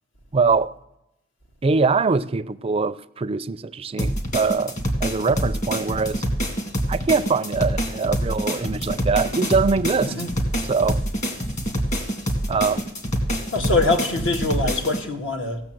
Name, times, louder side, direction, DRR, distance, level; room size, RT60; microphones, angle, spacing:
voice 1, 0.3-0.7 1.6-6.2 6.9-10.1 10.7-11.0 12.5-12.9, right 4 dB, 30° right, 0.4 m, -23 dB
sound 1, 4.0-15.0, equal, 40° left, 1.9 m, -26 dB
voice 2, 13.5-15.6, left 2 dB, 75° left, 1.7 m, -23 dB
16.0 x 6.9 x 7.7 m
head